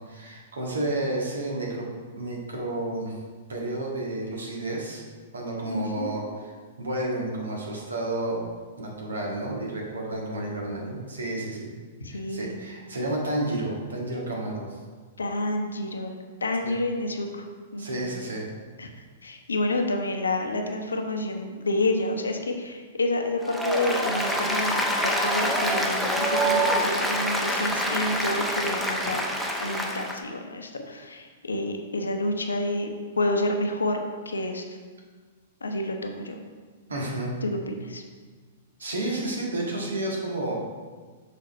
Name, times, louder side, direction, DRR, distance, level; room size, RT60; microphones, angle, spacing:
voice 1, 0.1-3.2 3.5-5.0 5.3-6.5 6.8-8.5 8.8-11.7 12.1-14.8 16.6-16.7 17.8-18.5 36.9-37.4 38.8-40.6, right 1 dB, 75° right, -2 dB, 1.6 m, -31 dB
voice 2, 5.7-6.1 12.0-12.6 15.2-17.5 17.7-18.1 18.8-29.2 29.6-34.6 35.6-36.4 37.4-38.0, left 2 dB, 80° left, 4 dB, 0.8 m, -29 dB
Applause, 23.4-30.2, equal, ahead, 0.8 m, -26 dB
6.8 x 4.2 x 5.2 m, 1.5 s
figure-of-eight pair, 105°, 0 cm